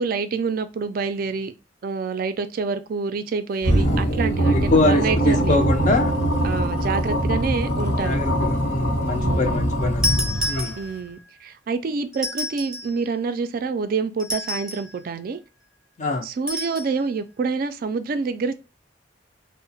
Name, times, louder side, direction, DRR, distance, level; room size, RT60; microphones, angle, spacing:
voice 1, 0.0-1.5 1.8-5.6 6.4-8.2 9.2-9.6 10.8-15.4 16.2-18.6, right 4 dB, 50° right, 0.3 m, -27 dB
sound 1, 3.6-10.9, right 1 dB, 70° left, 0.8 m, -22 dB
voice 2, 4.5-6.1 8.0-10.0 10.5-10.7 16.0-16.2, left 2 dB, 40° left, 0.4 m, -23 dB
sound 2, 10.0-11.2 12.1-13.0 14.2-15.0 16.5-16.9, left 1 dB, 5° right, 0.6 m, -29 dB
2.8 x 2.0 x 2.6 m
head